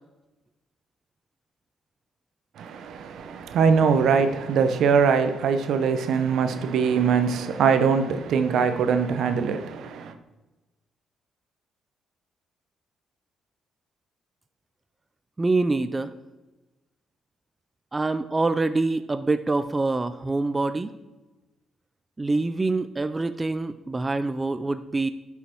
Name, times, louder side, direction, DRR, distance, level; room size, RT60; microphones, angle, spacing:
voice 1, 2.6-10.1, right 6 dB, 75° right, 0.8 m, -22 dB
voice 2, 15.4-16.1 17.9-20.9 22.2-25.1, right 3 dB, 20° right, 0.4 m, -25 dB
10.5 x 5.6 x 4.5 m
cardioid pair, 90°, 0 cm